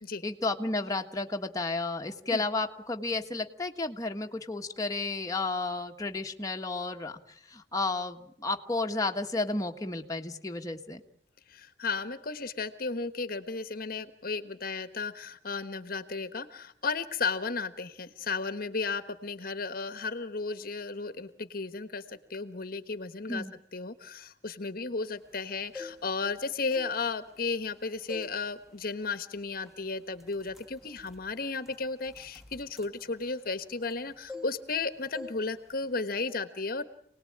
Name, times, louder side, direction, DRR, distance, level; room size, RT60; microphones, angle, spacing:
voice 1, 0.2-11.0 23.3-23.5, left 3 dB, 20° left, 3 dB, 1.5 m, -32 dB
voice 2, 11.5-23.4 23.7-36.8, left 4 dB, 55° left, 11 dB, 1.3 m, -34 dB
sound 1, 25.5-26.3 26.6-27.7 28.1-28.4 28.8-29.0 29.7-29.8 30.1-34.0 34.3-34.8 35.1-35.4 35.7-36.0, left 3 dB, ahead, 1.8 m, -45 dB
28.0 x 19.5 x 8.7 m, 0.69 s
head